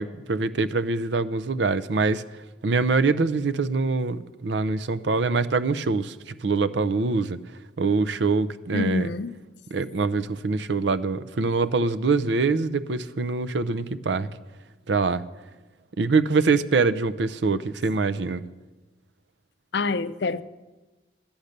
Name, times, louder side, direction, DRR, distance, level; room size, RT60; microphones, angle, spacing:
voice 1, 0.0-7.4 7.8-9.1 9.7-14.3 14.9-15.2 16.0-18.4, right 4 dB, 75° right, 0.6 m, -24 dB
voice 2, 8.7-9.3 19.7-20.4, left 3 dB, 65° left, 0.5 m, -26 dB
13.0 x 8.8 x 6.6 m
head